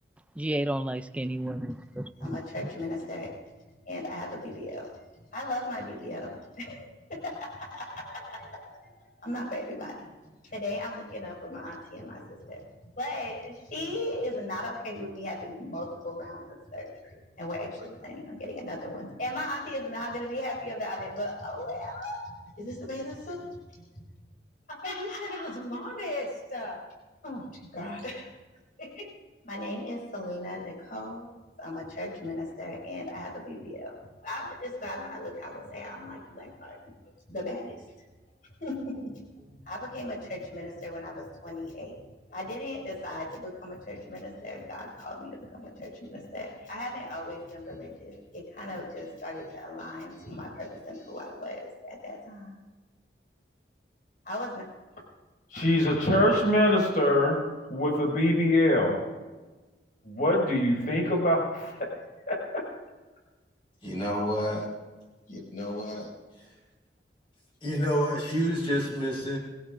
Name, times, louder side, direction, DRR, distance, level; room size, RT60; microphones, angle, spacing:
voice 1, 0.4-2.4, right 1 dB, 5° right, 11 dB, 0.4 m, -32 dB
voice 2, 2.2-3.3 3.9-4.9 5.3-8.8 9.2-10.0 10.5-12.6 13.0-23.5 24.7-26.8 27.2-27.4 27.7-28.3 28.8-29.1 29.4-31.3 31.6-33.9 34.2-36.8 37.3-37.8 38.6-39.1 39.7-42.0 42.3-52.6 54.3-54.6 55.5-57.4 57.7-59.0 60.0-61.9 62.3-62.6 65.3-66.1, left 1 dB, 50° left, -1 dB, 5.5 m, -32 dB
voice 3, 63.8-64.7 67.6-69.4, equal, 30° left, -2 dB, 4.7 m, -28 dB
21.5 x 17.0 x 2.6 m, 1.2 s
head